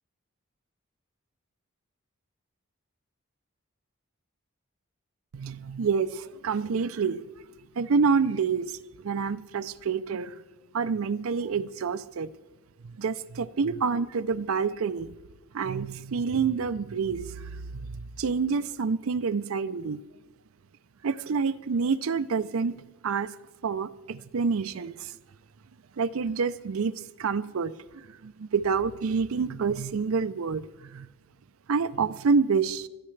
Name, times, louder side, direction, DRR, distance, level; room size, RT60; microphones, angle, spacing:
voice 1, 5.3-7.2 7.8-8.8 9.0-10.4 10.7-12.3 12.8-15.1 15.5-20.0 21.0-22.7 23.0-23.4 23.6-25.1 26.0-26.9 27.2-31.1 31.7-32.9, right 5 dB, 80° right, 12 dB, 0.5 m, -28 dB
21.5 x 13.0 x 3.3 m, 1.1 s
head